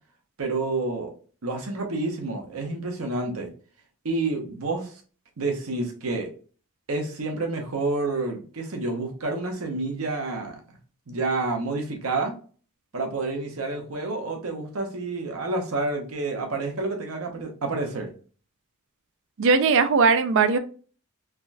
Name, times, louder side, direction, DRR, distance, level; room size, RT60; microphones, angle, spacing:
voice 1, 0.4-1.1 1.4-3.5 4.0-5.0 5.4-6.3 6.9-10.8 11.1-12.4 12.9-18.1, right 3 dB, 85° right, 3 dB, 0.9 m, -29 dB
voice 2, 19.4-20.6, right 4 dB, 65° right, 10 dB, 0.4 m, -19 dB
3.5 x 2.3 x 2.5 m, 0.39 s
head